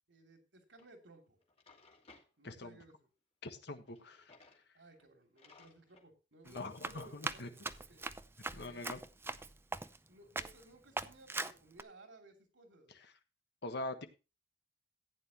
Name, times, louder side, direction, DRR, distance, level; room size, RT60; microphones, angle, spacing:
voice 1, 0.1-1.4 2.4-3.1 4.7-8.1 8.5-8.9 10.1-12.9, right 2 dB, 75° right, 4 dB, 2.9 m, -59 dB
Drawer open or close, 0.8-0.9 1.4-2.3 3.9-4.6 5.0-5.1 5.4-6.1, left 3 dB, 35° left, 2.3 m, -62 dB
voice 2, 2.4-2.8 3.4-4.3 6.4-7.5 8.5-9.0 13.6-14.1, left 2 dB, 65° left, 8 dB, 1.3 m, -43 dB
Run, 6.5-10.1 10.4-10.6 11.0-11.8, right 3 dB, 15° right, 0.5 m, -41 dB
15.0 x 9.5 x 2.9 m, 0.30 s
head